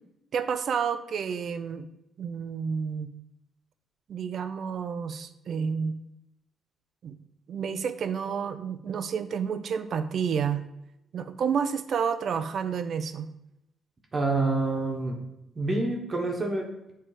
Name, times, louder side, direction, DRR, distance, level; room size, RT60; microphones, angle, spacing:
voice 1, 0.3-1.9 2.2-3.1 4.1-5.9 7.0-7.2 7.5-10.6 11.1-13.3, right 6 dB, 60° right, 11 dB, 0.5 m, -30 dB
voice 2, 14.1-15.2 15.5-16.9, right 2 dB, 35° right, 0 dB, 1.3 m, -27 dB
7.4 x 3.5 x 5.0 m, 0.86 s
cardioid pair, 90°, 0 cm